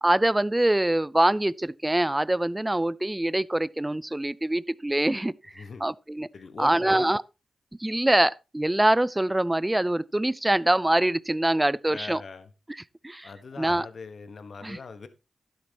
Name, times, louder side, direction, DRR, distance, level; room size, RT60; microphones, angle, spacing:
voice 1, 0.0-6.3 6.6-7.2 7.8-12.2 13.0-13.3 13.6-13.9 14.6-14.8, right 1 dB, 15° right, 0.4 m, -24 dB
voice 2, 6.3-7.1 11.9-12.5 13.2-15.1, left 5 dB, 65° left, 1.3 m, -41 dB
12.0 x 10.5 x 2.9 m
cardioid pair, 60°, 0 cm